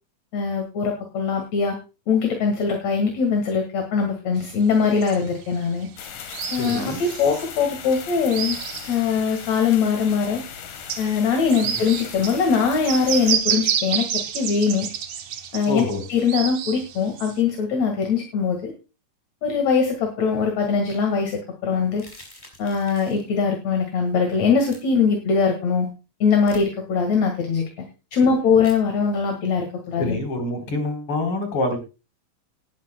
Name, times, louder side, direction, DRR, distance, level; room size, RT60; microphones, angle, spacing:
voice 1, 0.3-1.8 2.1-5.9 6.5-8.6 8.9-10.4 11.0-14.9 15.5-18.7 19.4-22.0 22.6-25.9 26.2-27.7 28.1-30.2, left 5 dB, 60° left, 3 dB, 2.9 m, -22 dB
sound 1, 4.5-9.9 10.3-10.4 10.8-17.4, right 8 dB, 60° right, 2.1 m, -29 dB
sound 2, 6.0-13.4, left 9 dB, 85° left, 3.1 m, -38 dB
voice 2, 6.6-7.0 11.6-11.8 15.7-16.0 30.0-31.8, left 2 dB, 40° left, 4 dB, 4.5 m, -26 dB
sound 3, 21.9-23.3 24.6-24.8 26.4-26.6 28.6-28.8, left 1 dB, 15° left, 4.9 m, -46 dB
19.0 x 12.0 x 2.2 m, 0.30 s
omnidirectional pair, 3.7 m